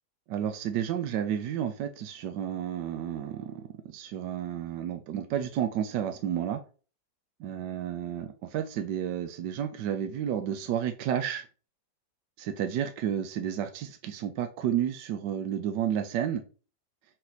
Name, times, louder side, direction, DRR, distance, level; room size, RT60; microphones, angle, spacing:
voice 1, 0.3-6.6 7.4-11.5 12.4-16.4, right 9 dB, 75° right, 7 dB, 1.2 m, -31 dB
6.5 x 4.1 x 4.0 m, 0.36 s
omnidirectional pair, 2.0 m